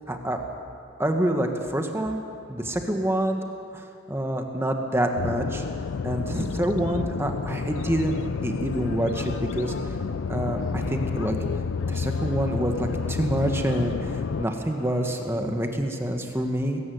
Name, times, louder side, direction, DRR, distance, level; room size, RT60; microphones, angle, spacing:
voice 1, 0.1-0.4 1.0-2.2 2.5-3.4 3.7-5.6 6.0-9.9 10.3-11.4 11.9-16.8, right 1 dB, 10° right, 4 dB, 1.4 m, -27 dB
sound 1, 5.2-14.5, left 5 dB, 70° left, 0.4 m, -30 dB
sound 2, 7.5-15.3, left 1 dB, 90° left, 2.7 m, -46 dB
21.0 x 13.5 x 9.4 m, 2.5 s
head